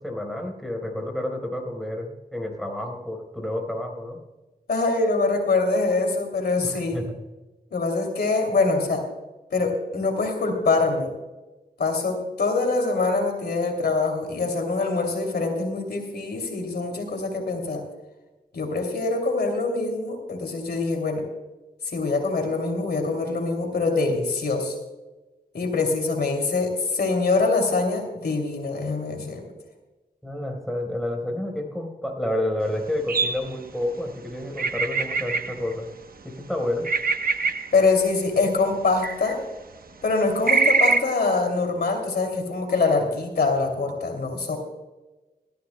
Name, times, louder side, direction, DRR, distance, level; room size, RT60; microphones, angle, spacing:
voice 1, 0.0-4.2 6.6-7.2 30.2-35.9 36.5-36.9, left 1 dB, ahead, 1 dB, 4.1 m, -29 dB
voice 2, 4.7-7.0 7.7-9.0 9.5-11.1 11.8-17.8 18.5-21.2 21.9-24.7 25.5-29.4 37.7-39.4 40.0-44.6, left 3 dB, 75° left, 3 dB, 2.8 m, -24 dB
sound 1, 33.1-33.5 34.6-35.7 36.8-37.8 39.0-39.3 40.5-41.0, right 4 dB, 60° right, 1.0 m, -23 dB
19.0 x 14.0 x 2.2 m, 1.1 s
cardioid pair, 60°, 17 cm